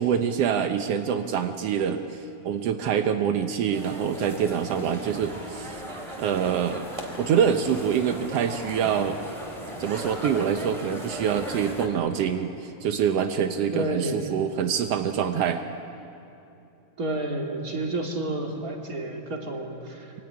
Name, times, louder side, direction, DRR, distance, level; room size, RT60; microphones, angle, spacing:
voice 1, 0.0-5.8 6.2-6.9 7.2-9.2 9.8-15.6, right 8 dB, 85° right, 7 dB, 1.4 m, -25 dB
sound 1, 3.7-11.9, right 1 dB, 10° right, 2.8 m, -37 dB
voice 2, 13.7-14.3 17.0-20.1, right 2 dB, 25° right, 1 dB, 2.7 m, -30 dB
25.0 x 24.5 x 9.6 m, 2.7 s
omnidirectional pair, 4.2 m